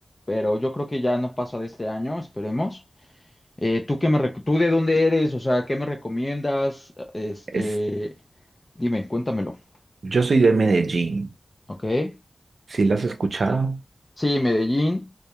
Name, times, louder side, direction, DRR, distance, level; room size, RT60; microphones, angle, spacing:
voice 1, 0.3-2.8 3.6-8.1 8.8-9.6 11.7-12.2 14.2-15.1, left 1 dB, 25° left, 0.4 m, -24 dB
voice 2, 10.0-11.3 12.7-13.8, right 3 dB, 70° right, 0.5 m, -21 dB
2.2 x 2.2 x 2.8 m
wide cardioid pair, 95°, 0 cm